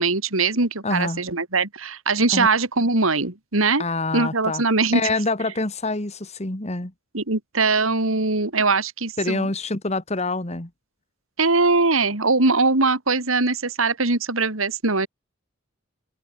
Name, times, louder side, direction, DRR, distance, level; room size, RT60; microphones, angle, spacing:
voice 1, 0.0-3.8 4.1-5.0 7.1-9.5 11.4-15.1, right 3 dB, 90° right, 2.9 m, -21 dB
voice 2, 0.8-1.2 2.3-2.5 3.8-4.6 4.9-6.9 9.2-10.7, left 2 dB, 35° left, 2.0 m, -26 dB
head